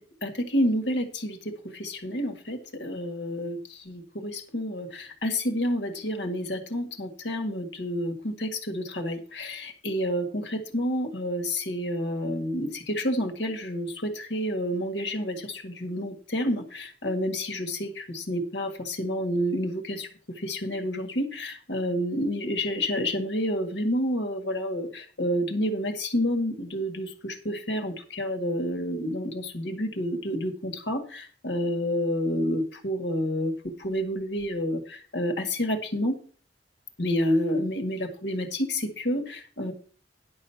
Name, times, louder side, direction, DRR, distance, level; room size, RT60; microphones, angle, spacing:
voice 1, 0.2-1.4 1.7-20.1 20.4-33.5 33.8-36.1 37.0-39.7, equal, 80° left, 6 dB, 1.9 m, -29 dB
11.0 x 6.5 x 5.8 m, 0.42 s
head